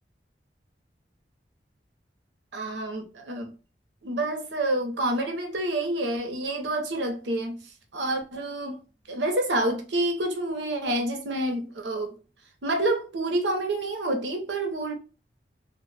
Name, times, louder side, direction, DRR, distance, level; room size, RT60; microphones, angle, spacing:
voice 1, 2.5-3.5 4.0-7.6 7.9-8.8 9.1-12.1 12.6-14.9, right 1 dB, 90° right, 0.7 m, -28 dB
2.1 x 2.1 x 3.2 m
head